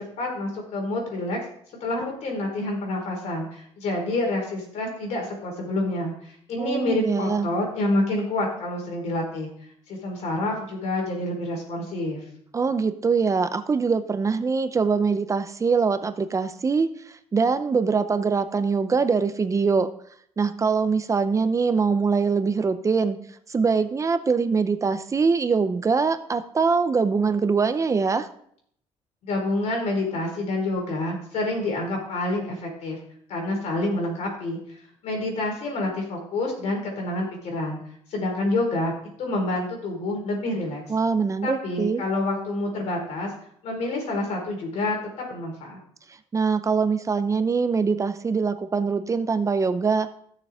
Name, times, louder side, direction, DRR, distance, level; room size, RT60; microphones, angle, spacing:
voice 1, 0.0-1.4 1.8-9.5 9.9-12.2 29.2-33.0 33.3-37.8 38.1-38.9 39.2-40.8 41.4-43.3 43.6-45.8, left 2 dB, 75° left, 1 dB, 4.1 m, -28 dB
voice 2, 6.6-7.5 12.5-19.9 20.4-28.3 40.9-42.0 46.1-50.1, right 5 dB, 25° right, 11 dB, 0.6 m, -23 dB
15.5 x 6.8 x 3.6 m, 0.65 s
cardioid pair, 125°, 12 cm